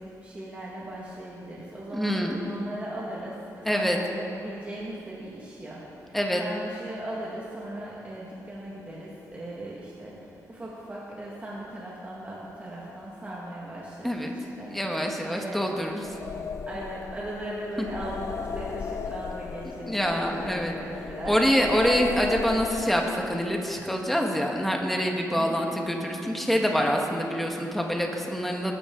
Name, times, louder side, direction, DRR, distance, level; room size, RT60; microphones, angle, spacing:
voice 1, 0.0-15.6 16.7-21.4 25.4-25.8, right 1 dB, 20° right, -6 dB, 1.8 m, -38 dB
voice 2, 1.9-2.4 3.6-4.0 6.1-6.4 14.0-14.3 14.7-16.0 19.9-20.7 21.3-28.7, equal, 5° left, 1 dB, 1.4 m, -26 dB
sound 1, 15.9-23.5, left 6 dB, 50° left, 0.5 m, -36 dB
20.5 x 12.5 x 3.8 m, 2.8 s
wide cardioid pair, 155°, 6 cm